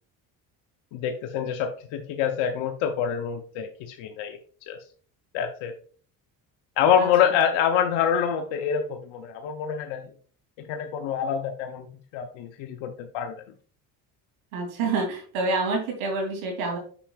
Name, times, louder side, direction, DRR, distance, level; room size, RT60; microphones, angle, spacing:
voice 1, 0.9-4.4 4.7-4.8 5.3-5.7 6.8-10.0 10.6-13.3, left 8 dB, 75° left, 6 dB, 0.8 m, -26 dB
voice 2, 14.5-16.8, right 3 dB, 85° right, 1 dB, 2.8 m, -27 dB
7.0 x 5.8 x 2.3 m, 0.43 s
supercardioid pair, 70°, 45 cm